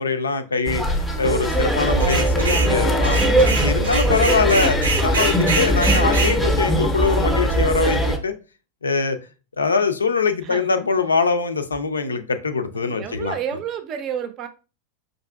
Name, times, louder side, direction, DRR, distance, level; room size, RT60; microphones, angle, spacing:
voice 1, 0.0-3.2 3.6-4.8 5.0-8.3 8.8-9.2 9.6-13.4, left 4 dB, 75° left, 0.4 m, -22 dB
sound 1, 0.7-8.2, equal, 10° left, 0.6 m, -20 dB
sound 2, 2.0-2.7 3.0-6.4, right 4 dB, 75° right, 0.7 m, -25 dB
voice 2, 4.1-4.5 10.4-10.7 12.8-14.5, right 8 dB, 35° right, 0.5 m, -30 dB
5.2 x 2.5 x 2.3 m
figure-of-eight pair, 90°, 0 cm